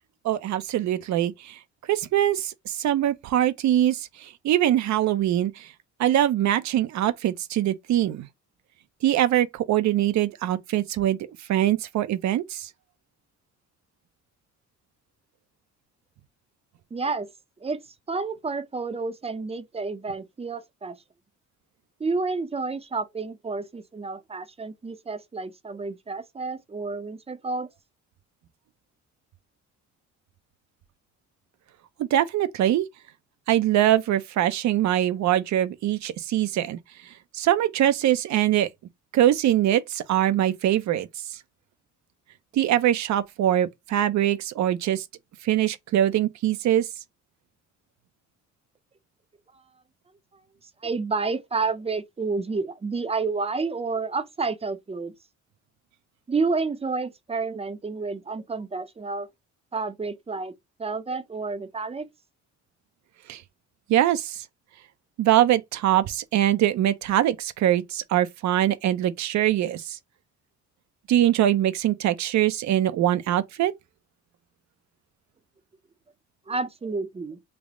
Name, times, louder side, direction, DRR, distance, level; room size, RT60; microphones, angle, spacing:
voice 1, 0.2-1.6 1.9-5.7 6.0-8.3 9.0-11.2 11.5-12.7 32.0-32.9 33.5-38.7 39.1-41.4 42.5-45.0 45.4-46.9 63.3-63.4 63.9-64.4 65.2-70.0 71.1-73.7, right 12 dB, 65° right, 0.5 m, -23 dB
voice 2, 16.9-17.3 17.6-17.8 18.1-21.0 22.0-27.7 49.5-49.6 50.6-55.1 56.3-59.3 59.7-60.5 60.8-62.1 76.5-77.4, right 4 dB, 20° right, 0.5 m, -30 dB
3.4 x 2.0 x 3.6 m
cardioid pair, 90°, 30 cm